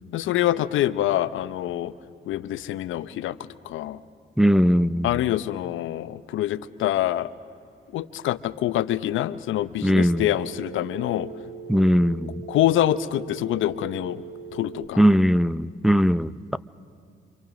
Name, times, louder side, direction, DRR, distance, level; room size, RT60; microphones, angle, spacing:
voice 1, 0.1-1.9 2.3-3.4 3.6-4.0 5.0-7.3 7.9-11.3 12.5-14.2 14.5-15.1, left 13 dB, 80° left, 14 dB, 0.8 m, -25 dB
voice 2, 4.4-5.1 9.8-10.2 11.7-12.3 15.0-16.6, equal, ahead, 13 dB, 0.5 m, -19 dB
Telephone, 9.9-14.9, right 6 dB, 30° right, 3.6 m, -40 dB
27.0 x 26.5 x 6.3 m, 2.3 s
cardioid pair, 90°, 20 cm